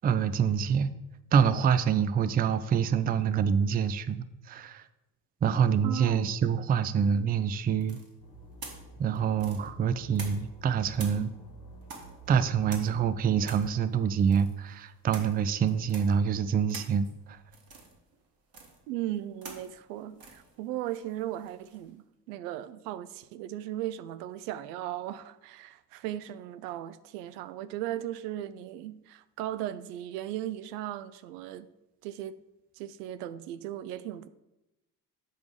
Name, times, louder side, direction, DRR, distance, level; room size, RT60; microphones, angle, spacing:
voice 1, 0.0-0.9 1.3-4.8 5.4-8.0 9.0-11.3 12.3-17.4, right 7 dB, 20° right, 0.4 m, -26 dB
voice 2, 5.8-6.3 18.9-31.7 32.0-32.4 32.8-34.3, right 13 dB, 75° right, 0.5 m, -37 dB
sound 1, 7.8-10.6 10.9-21.9, right 3 dB, 45° right, 2.0 m, -48 dB
sound 2, 8.2-13.6, right 1 dB, 50° left, 1.3 m, -51 dB
8.0 x 5.1 x 4.8 m
figure-of-eight pair, 50°, 49 cm